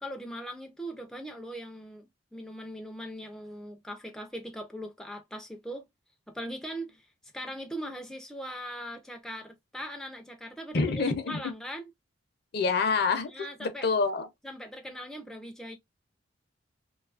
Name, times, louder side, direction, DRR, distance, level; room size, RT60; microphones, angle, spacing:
voice 1, 0.0-5.9 6.3-10.8 11.3-11.9 13.3-13.9 14.4-15.8, equal, 5° left, 0.3 m, -40 dB
voice 2, 10.7-11.4 12.5-14.3, left 4 dB, 55° left, 0.5 m, -27 dB
2.7 x 2.3 x 2.3 m
head